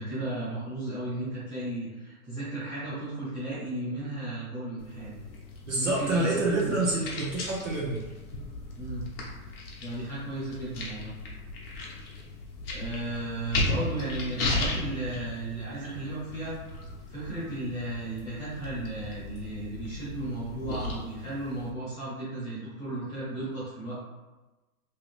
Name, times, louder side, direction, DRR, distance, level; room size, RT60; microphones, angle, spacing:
voice 1, 0.0-5.2 5.7-6.9 8.8-9.1 9.8-11.1 12.7-16.5 17.1-23.9, right 2 dB, 10° left, -11 dB, 0.7 m, -35 dB
sound 1, 4.8-21.7, left 2 dB, 40° left, 0.8 m, -36 dB
voice 2, 5.7-8.0, right 2 dB, 50° right, -5 dB, 0.8 m, -27 dB
2.8 x 2.8 x 3.0 m, 1.1 s
hypercardioid pair, 160°, 45 cm